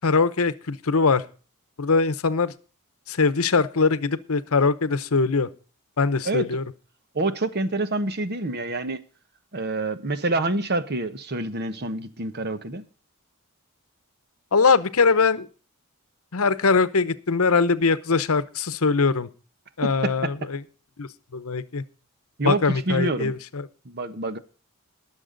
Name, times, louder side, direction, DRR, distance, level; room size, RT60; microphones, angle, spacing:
voice 1, 0.0-1.2 1.8-2.5 3.1-5.5 6.0-6.6 14.5-15.5 16.3-19.3 19.8-20.6 21.0-21.8 22.4-23.7, left 4 dB, 70° left, 0.9 m, -22 dB
voice 2, 7.1-9.0 9.5-12.8 20.0-20.1 22.4-23.3 23.8-24.4, right 2 dB, 45° right, 1.2 m, -27 dB
21.5 x 7.2 x 3.9 m
head